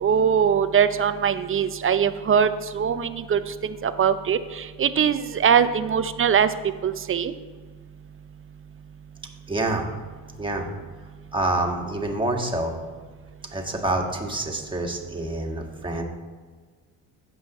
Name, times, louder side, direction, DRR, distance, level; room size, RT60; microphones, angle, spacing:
voice 1, 0.0-6.5 6.8-7.3, right 7 dB, 25° right, 12 dB, 0.6 m, -22 dB
voice 2, 9.5-9.9 10.4-10.7 11.3-12.7 13.5-16.0, right 2 dB, 10° right, 1 dB, 1.8 m, -27 dB
15.5 x 5.5 x 3.1 m, 1.5 s
supercardioid pair, 70°, 48 cm